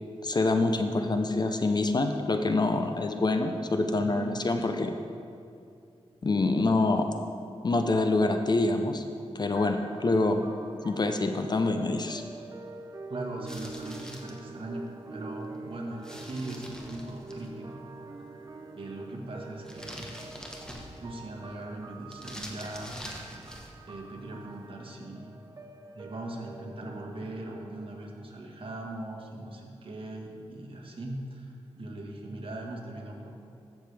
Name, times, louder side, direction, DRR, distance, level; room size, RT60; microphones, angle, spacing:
voice 1, 0.2-4.9 6.2-7.1 7.6-9.0 9.3-10.5 10.8-12.2, left 2 dB, 40° left, 6 dB, 0.6 m, -26 dB
voice 2, 4.0-4.4 13.1-18.4 18.7-20.1 21.0-22.9 23.9-25.3 25.9-33.3, right 1 dB, 55° right, 0 dB, 1.6 m, -40 dB
sound 1, 9.5-27.1, right 3 dB, 35° right, 0.7 m, -46 dB
sound 2, 13.5-14.4 16.0-17.5 19.6-21.2 22.1-23.8, equal, 5° left, 1.2 m, -44 dB
14.0 x 6.6 x 3.4 m, 2.5 s
wide cardioid pair, 80°, 11 cm